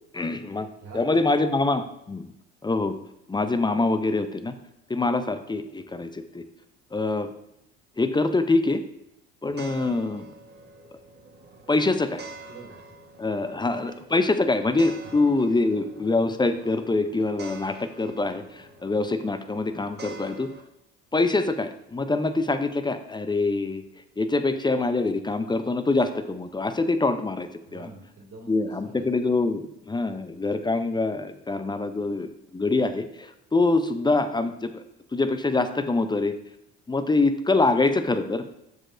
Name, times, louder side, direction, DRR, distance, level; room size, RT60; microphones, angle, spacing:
voice 1, 0.1-0.7 0.9-2.3 2.6-3.0 3.3-4.6 4.9-6.4 6.9-7.3 8.0-8.8 9.4-10.3 11.7-12.2 13.2-20.5 21.1-23.8 24.2-27.9 28.5-34.8 35.1-36.4 36.9-38.5, left 3 dB, 15° left, 10 dB, 0.5 m, -25 dB
voice 2, 0.8-1.7 12.5-13.0 15.0-15.1 27.6-29.0, right 3 dB, 50° right, -1 dB, 2.3 m, -46 dB
sound 1, 9.5-20.6, right 3 dB, 30° right, 1.2 m, -46 dB
7.3 x 6.6 x 2.5 m, 0.82 s
hypercardioid pair, 60°, 32 cm